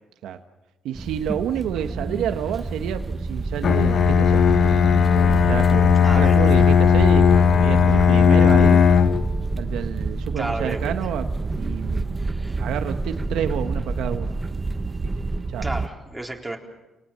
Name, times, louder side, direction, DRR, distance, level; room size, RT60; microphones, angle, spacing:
voice 1, 0.8-4.4 5.1-8.8 9.6-12.1 12.6-14.4 15.0-15.1 15.5-15.7, right 10 dB, 85° right, 7 dB, 1.2 m, -29 dB
sound 1, 0.9-15.9, right 3 dB, 25° right, 1.3 m, -28 dB
Bowed string instrument, 3.6-9.3, left 7 dB, 55° left, 1.0 m, -16 dB
voice 2, 6.0-6.4 10.4-11.0 12.2-12.6 15.6-16.6, right 2 dB, 10° right, 0 dB, 4.0 m, -32 dB
29.0 x 19.0 x 7.5 m, 1.0 s
cardioid pair, 90°, 0 cm